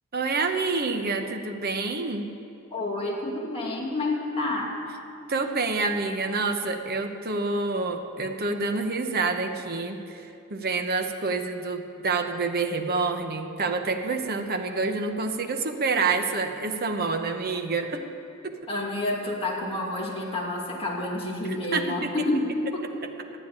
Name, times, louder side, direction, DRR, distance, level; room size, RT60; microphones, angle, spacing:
voice 1, 0.1-2.3 5.3-18.0 18.4-18.5 21.4-22.1, right 3 dB, 50° right, 5 dB, 1.0 m, -28 dB
voice 2, 2.7-4.7 18.7-22.8, left 2 dB, 30° left, -3 dB, 2.6 m, -29 dB
12.5 x 9.3 x 9.6 m, 2.6 s
head